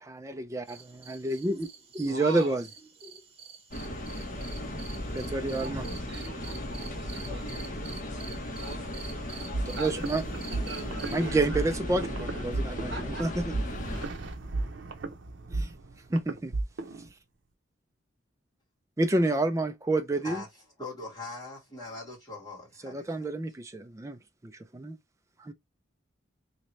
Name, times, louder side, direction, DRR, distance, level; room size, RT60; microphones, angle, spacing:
voice 1, 0.0-2.7 3.0-3.1 5.1-5.9 9.8-10.2 11.1-13.5 15.5-15.7 16.1-16.5 19.0-20.4 22.8-25.0 25.4-25.5, right 2 dB, 15° right, 0.3 m, -29 dB
sound 1, 0.7-11.3, right 6 dB, 30° right, 0.7 m, -48 dB
voice 2, 2.1-2.6 5.4-8.0 8.6-10.1 10.3-12.5 12.9-13.2, right 2 dB, 60° right, 1.4 m, -43 dB
sound 2, 3.7-14.1, left 1 dB, 40° left, 0.9 m, -36 dB
sound 3, 9.5-17.1, right 2 dB, 80° right, 0.7 m, -35 dB
voice 3, 20.8-23.3, left 3 dB, 20° left, 1.8 m, -41 dB
3.1 x 2.8 x 3.0 m
head